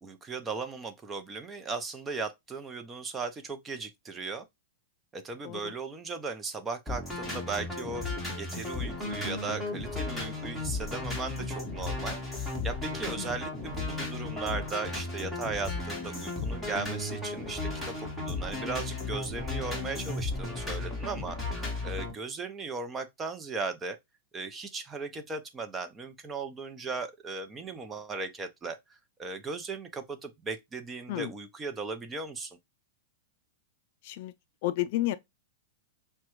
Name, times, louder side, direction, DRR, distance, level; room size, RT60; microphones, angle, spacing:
voice 1, 0.0-4.5 5.1-8.0 8.4-24.0 24.3-28.8 29.2-32.6, right 4 dB, 15° right, 0.6 m, -37 dB
sound 1, 6.9-22.1, left 3 dB, ahead, 1.7 m, -35 dB
voice 2, 34.6-35.2, left 15 dB, 55° left, 0.3 m, -31 dB
5.8 x 2.2 x 3.0 m
hypercardioid pair, 135°, 0 cm